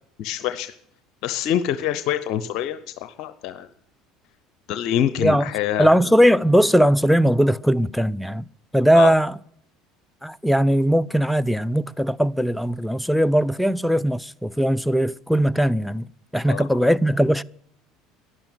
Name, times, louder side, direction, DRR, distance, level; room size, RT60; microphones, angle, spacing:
voice 1, 0.2-0.7 1.2-3.7 4.7-5.9 8.9-9.1 16.5-16.6, left 10 dB, 60° left, 0.8 m, -25 dB
voice 2, 5.2-5.5 5.8-8.4 8.7-9.4 10.2-17.4, equal, ahead, 0.5 m, -19 dB
12.0 x 11.0 x 9.1 m
hypercardioid pair, 75°, 0 cm